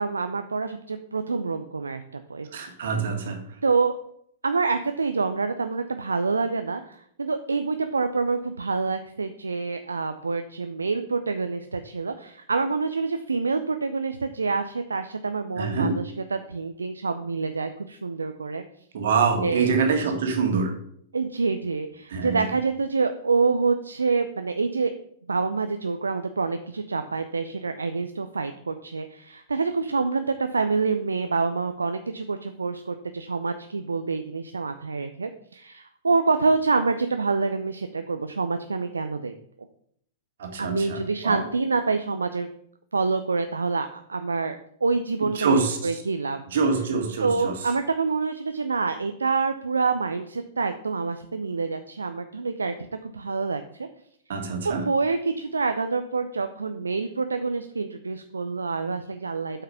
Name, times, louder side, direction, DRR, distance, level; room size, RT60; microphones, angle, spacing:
voice 1, 0.0-2.7 3.6-4.0 4.4-18.6 19.4-19.7 21.1-24.9 25.3-39.3 40.6-42.5 42.9-46.4 47.2-52.7 53.0-53.9 54.4-59.6, right 4 dB, 75° right, 8 dB, 0.5 m, -27 dB
voice 2, 2.5-3.4 15.6-16.0 18.9-20.8 22.1-22.4 40.4-41.0 41.2-41.4 45.4-45.9 46.5-47.5 54.3-54.8, right 5 dB, 60° right, 4 dB, 1.9 m, -25 dB
8.1 x 5.7 x 5.7 m, 0.67 s
figure-of-eight pair, 100°, 0 cm